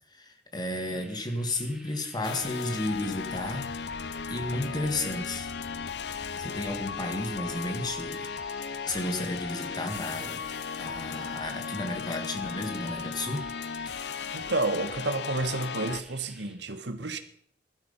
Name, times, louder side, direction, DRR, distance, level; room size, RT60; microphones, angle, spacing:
voice 1, 0.1-3.7 4.0-5.5 6.4-8.3 8.9-10.4 10.8-13.5, left 1 dB, 25° left, 2.2 m, -33 dB
sound 1, 0.7-16.6, right 1 dB, 5° right, 2.9 m, -52 dB
sound 2, 2.2-16.0, left 6 dB, 70° left, 0.6 m, -36 dB
sound 3, 3.1-15.1, equal, 55° right, 2.4 m, -53 dB
voice 2, 14.3-17.2, right 2 dB, 75° right, 1.5 m, -30 dB
15.5 x 12.0 x 5.7 m
head